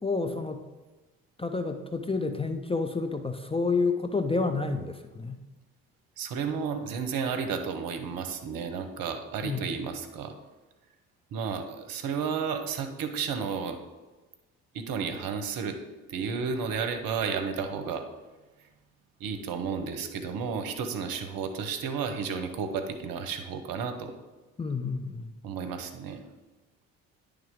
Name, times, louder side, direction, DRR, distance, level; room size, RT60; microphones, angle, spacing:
voice 1, 0.0-0.6 1.4-5.4 9.4-9.6 24.6-25.3, left 4 dB, 15° left, 6 dB, 0.5 m, -29 dB
voice 2, 6.2-10.3 11.3-13.8 14.7-15.8 16.1-18.1 19.2-24.1 25.4-26.2, right 6 dB, 60° right, 7 dB, 0.9 m, -32 dB
10.0 x 3.5 x 3.6 m, 1.2 s
hypercardioid pair, 50°, 40 cm